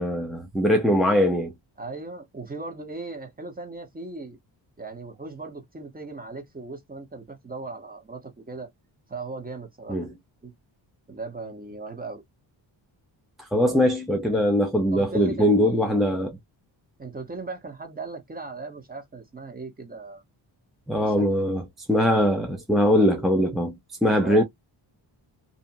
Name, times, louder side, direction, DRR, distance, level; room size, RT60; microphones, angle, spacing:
voice 1, 0.0-1.5 9.9-10.1 13.4-16.4 20.9-24.4, equal, ahead, 0.4 m, -22 dB
voice 2, 1.8-4.4 4.8-8.7 9.1-10.1 10.4-10.5 11.1-12.2 13.5-13.9 14.9-15.9 17.0-20.2 21.1-21.2 24.2-24.4, right 3 dB, 20° right, 1.0 m, -38 dB
2.7 x 2.3 x 2.6 m
cardioid pair, 100°, 48 cm